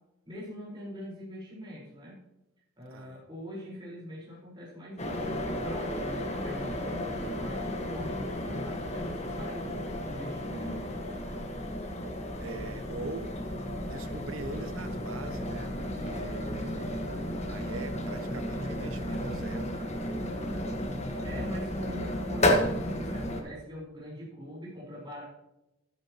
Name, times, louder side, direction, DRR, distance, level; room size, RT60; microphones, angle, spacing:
voice 1, 0.2-2.2 2.8-11.2 21.2-25.2, equal, 25° right, 4.6 m, -43 dB
voice 2, 2.9-3.2 12.4-13.4 13.8-17.1 17.5-19.9, right 3 dB, 80° right, 0.9 m, -43 dB
sound 1, 5.0-23.4, left 1 dB, 35° left, 1.5 m, -33 dB
11.5 x 11.0 x 3.0 m
head